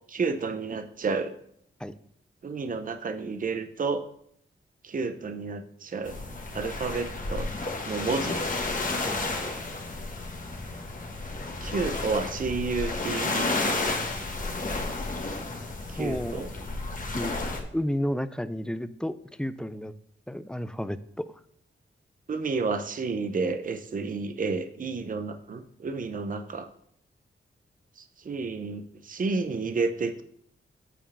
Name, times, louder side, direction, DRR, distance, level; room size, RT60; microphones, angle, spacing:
voice 1, 0.1-1.3 2.4-4.0 4.8-6.2 6.5-7.5 7.9-8.4 11.6-13.6 15.9-16.5 22.3-26.7 28.3-30.2, right 4 dB, 40° right, 8 dB, 0.6 m, -30 dB
sound 1, 6.0-17.6, left 2 dB, 40° left, 1.3 m, -32 dB
voice 2, 16.0-16.5 17.2-19.9 20.3-21.3, equal, 5° left, 13 dB, 0.4 m, -32 dB
9.0 x 4.4 x 5.5 m, 0.68 s
wide cardioid pair, 110°, 21 cm